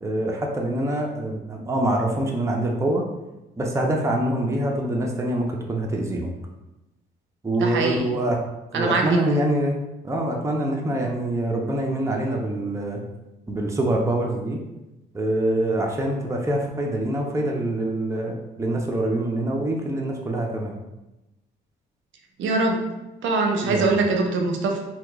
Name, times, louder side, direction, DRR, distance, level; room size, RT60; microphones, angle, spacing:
voice 1, 0.0-3.1 3.6-6.3 7.4-8.4 8.7-9.8 10.0-13.0 13.5-14.6 15.1-20.7 23.6-23.9, right 1 dB, 15° right, 0 dB, 0.6 m, -25 dB
voice 2, 7.6-8.1 8.7-9.4 22.4-22.8 23.2-24.8, right 3 dB, 70° right, 3 dB, 0.5 m, -23 dB
2.9 x 2.3 x 3.4 m, 0.98 s
cardioid pair, 90°, 20 cm